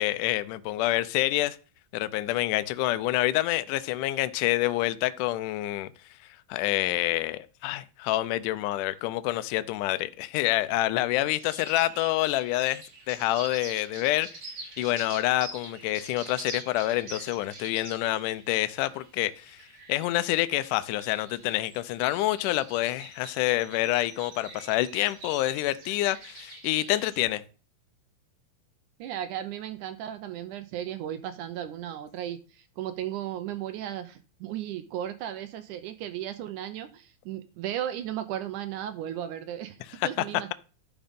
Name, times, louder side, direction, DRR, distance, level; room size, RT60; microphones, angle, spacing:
voice 1, 0.0-1.6 1.9-5.9 6.5-12.8 13.1-14.3 14.8-19.6 19.9-27.4, left 16 dB, 80° left, 1.9 m, -27 dB
sound 1, 11.4-27.2, right 2 dB, 50° right, 3.9 m, -45 dB
voice 2, 29.0-40.5, right 11 dB, 75° right, 1.9 m, -35 dB
11.0 x 5.1 x 5.3 m
omnidirectional pair, 4.2 m